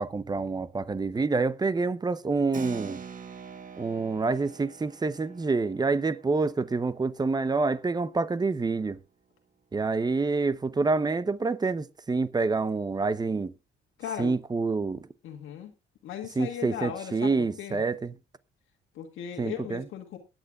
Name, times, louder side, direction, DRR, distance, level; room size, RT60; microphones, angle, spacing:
voice 1, 0.0-3.0 3.8-9.0 9.7-13.5 14.2-15.1 16.4-18.1 19.4-19.8, right 3 dB, 20° right, 0.7 m, -27 dB
Keyboard (musical), 2.5-8.6, right 6 dB, 40° right, 1.2 m, -45 dB
voice 2, 14.0-14.4 15.2-15.7 16.0-17.8 18.9-20.2, left 9 dB, 90° left, 1.7 m, -37 dB
22.5 x 9.0 x 2.4 m
cardioid pair, 90°, 20 cm